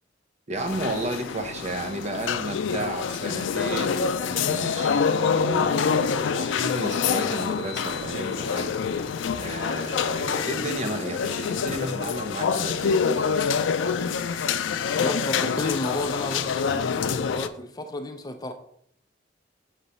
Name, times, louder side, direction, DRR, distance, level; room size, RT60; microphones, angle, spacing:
voice 1, 0.5-4.9 5.4-8.8 9.4-13.0, right 1 dB, 35° right, 5 dB, 0.6 m, -32 dB
sound 1, 0.6-17.5, left 6 dB, 90° left, 0.4 m, -26 dB
voice 2, 14.9-18.5, left 1 dB, 20° left, 5 dB, 0.5 m, -32 dB
6.6 x 3.0 x 5.4 m, 0.68 s
head